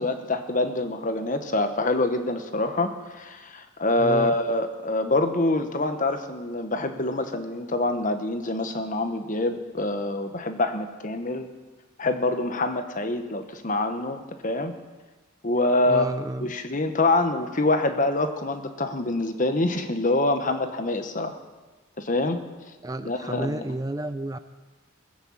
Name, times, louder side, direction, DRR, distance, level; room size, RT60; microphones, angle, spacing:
voice 1, 0.0-11.5 12.0-14.7 15.4-16.1 16.4-21.4 22.0-22.4 23.0-23.7, left 2 dB, 40° left, 8 dB, 1.2 m, -25 dB
voice 2, 4.0-4.4 15.8-16.5 22.8-24.4, right 2 dB, 20° right, 10 dB, 0.5 m, -31 dB
20.5 x 9.0 x 7.4 m, 1.3 s
head